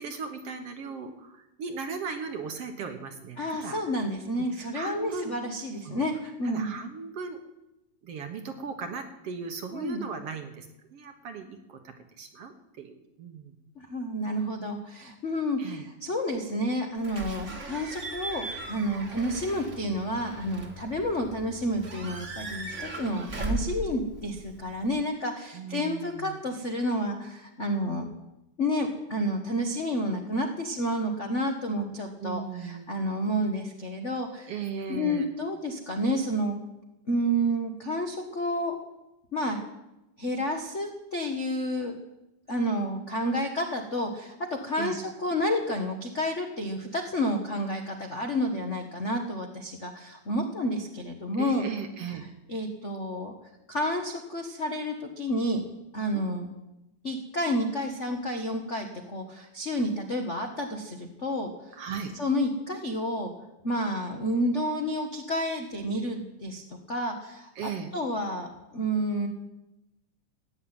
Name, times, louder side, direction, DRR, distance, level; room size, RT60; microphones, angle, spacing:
voice 1, 0.0-3.9 4.4-5.3 5.9-6.1 6.4-7.4 8.0-13.5 15.6-15.9 25.5-26.4 32.2-32.9 34.5-35.3 44.8-45.0 51.4-52.2 56.1-56.2 61.7-62.1 67.6-67.9, right 5 dB, 60° right, 6 dB, 1.9 m, -37 dB
voice 2, 3.4-6.7 9.7-10.0 13.7-28.1 28.6-34.5 34.9-36.5 37.1-38.8 39.3-39.6 40.2-42.0 42.5-51.7 52.5-53.4 53.7-55.6 55.9-56.5 57.0-61.8 62.2-63.3 63.6-66.6 66.9-69.3, equal, 70° left, 3 dB, 0.6 m, -30 dB
Slam / Squeak / Alarm, 17.0-25.0, right 1 dB, 30° right, 1.5 m, -38 dB
16.0 x 9.8 x 8.9 m, 0.93 s
omnidirectional pair, 3.8 m